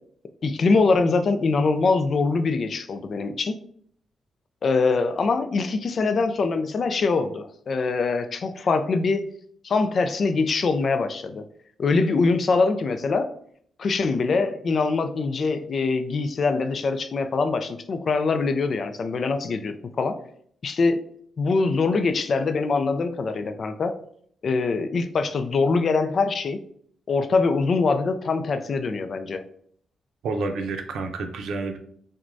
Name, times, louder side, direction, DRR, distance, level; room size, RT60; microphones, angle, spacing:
voice 1, 0.4-3.6 4.6-9.3 9.6-11.4 11.8-13.3 13.8-20.2 20.6-21.0 21.4-24.0 24.4-26.6 27.1-29.4, left 4 dB, 50° left, 9 dB, 0.4 m, -23 dB
voice 2, 30.2-31.8, right 3 dB, 90° right, 6 dB, 0.5 m, -29 dB
6.0 x 2.2 x 2.6 m, 0.63 s
cardioid pair, 115°, 0 cm